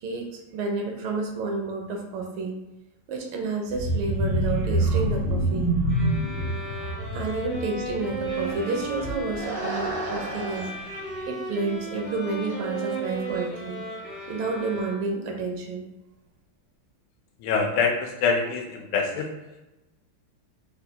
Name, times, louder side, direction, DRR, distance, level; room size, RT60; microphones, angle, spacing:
voice 1, 0.0-2.6 3.1-5.7 7.1-10.7 11.3-13.8 14.3-15.9, right 3 dB, 80° right, 1 dB, 1.4 m, -30 dB
sound 1, 3.7-9.5 9.8-10.1 10.4-10.5, right 1 dB, 55° left, 0.9 m, -27 dB
sound 2, 5.9-15.3, right 2 dB, 25° left, 0.5 m, -35 dB
sound 3, 7.8-9.0 9.3-11.3 11.9-12.1 12.4-12.6 12.9-14.8, right 1 dB, 60° right, 0.5 m, -37 dB
voice 2, 17.4-19.3, left 5 dB, 90° left, 2 dB, 1.5 m, -25 dB
4.2 x 2.3 x 2.7 m, 1.0 s
omnidirectional pair, 2.4 m